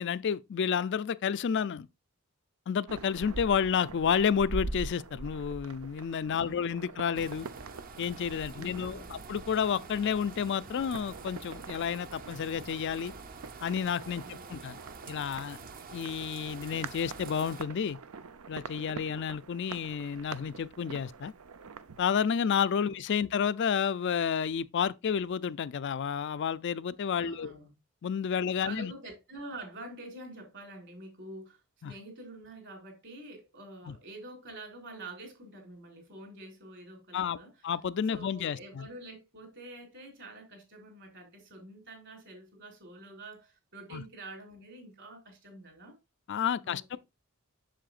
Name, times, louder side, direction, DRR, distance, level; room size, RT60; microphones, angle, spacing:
voice 1, 0.0-1.9 2.7-7.5 8.0-13.1 13.6-14.8 15.1-15.6 15.9-18.0 18.5-21.3 22.0-27.5 28.0-28.9 31.8-31.9 33.9-34.0 37.1-37.4 37.6-38.9 43.9-44.0 46.3-47.0, left 7 dB, 55° left, 0.4 m, -30 dB
sound 1, 2.9-22.1, right 3 dB, 85° right, 0.7 m, -44 dB
voice 2, 6.4-7.0 8.5-9.3 14.2-14.8 22.9-23.0 27.2-27.7 28.6-37.5 38.1-46.0 46.6-47.0, right 2 dB, 55° right, 4.1 m, -47 dB
sound 2, 7.1-17.6, right 4 dB, 40° right, 0.7 m, -47 dB
7.6 x 7.0 x 2.4 m
head